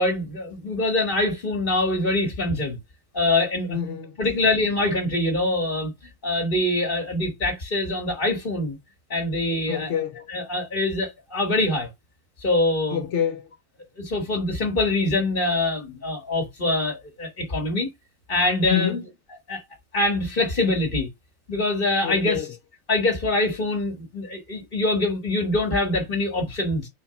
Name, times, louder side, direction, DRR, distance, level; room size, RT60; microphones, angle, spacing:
voice 1, 0.0-2.8 3.1-3.8 4.2-5.9 6.2-8.8 9.1-9.9 10.3-11.9 12.4-13.0 14.0-17.9 18.3-18.9 19.5-19.6 19.9-21.1 21.5-22.5 22.9-26.9, left 2 dB, 40° left, 1.9 m, -24 dB
voice 2, 3.7-4.2 9.7-10.2 12.9-13.5 18.7-19.0 22.0-22.5, left 9 dB, 65° left, 1.1 m, -27 dB
4.6 x 4.4 x 5.8 m
omnidirectional pair, 1.4 m